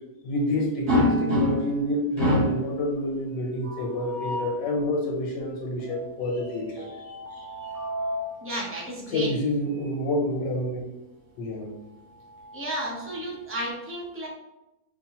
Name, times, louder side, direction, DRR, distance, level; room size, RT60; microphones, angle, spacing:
voice 1, 0.2-7.7 9.1-10.8 11.4-11.7, left 1 dB, 85° left, 0 dB, 1.6 m, -28 dB
sound 1, 0.9-1.8 2.2-2.7 3.9-4.6 7.3-8.3 9.7-9.9 10.3-10.4 11.9-13.2, left 1 dB, 40° right, 1.4 m, -27 dB
sound 2, 3.6-4.7 5.8-9.0, right 2 dB, 75° right, 1.5 m, -44 dB
voice 2, 8.4-9.3 12.5-14.3, right 1 dB, 15° right, -4 dB, 0.4 m, -32 dB
5.1 x 2.7 x 2.9 m, 0.92 s
omnidirectional pair, 1.9 m